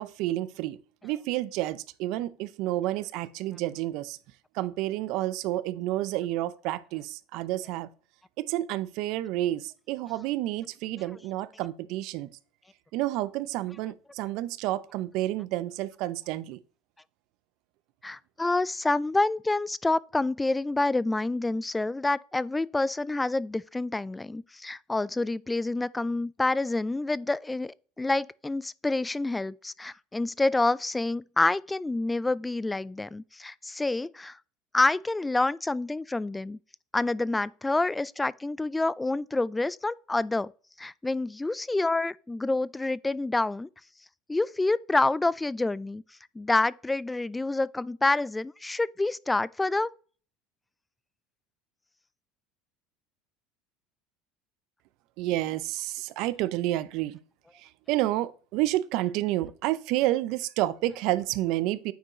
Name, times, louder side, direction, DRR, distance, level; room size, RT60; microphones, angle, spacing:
voice 1, 0.0-4.2 4.5-7.9 8.4-12.3 12.9-16.6 55.2-57.2 57.5-61.9, right 15 dB, 65° right, 0.5 m, -30 dB
voice 2, 18.0-34.4 34.7-36.6 36.9-40.5 40.8-43.7 44.3-46.0 46.4-49.9, left 2 dB, 15° left, 0.3 m, -27 dB
9.2 x 4.4 x 3.0 m
hypercardioid pair, 85°, 0 cm